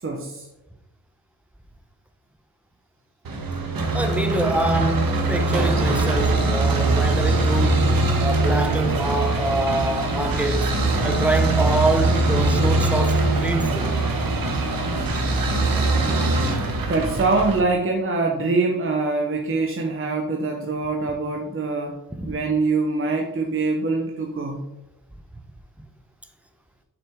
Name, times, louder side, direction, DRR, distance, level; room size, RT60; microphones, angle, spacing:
voice 1, 0.0-0.5 16.9-22.0 22.3-24.6, right 3 dB, 35° right, 0.8 m, -24 dB
sound 1, 3.2-17.6, right 2 dB, 65° right, 1.2 m, -22 dB
voice 2, 3.9-7.9 8.2-10.7 11.0-13.9 22.2-22.3, right 1 dB, 5° right, 0.7 m, -25 dB
6.8 x 5.9 x 3.6 m
wide cardioid pair, 120°, 38 cm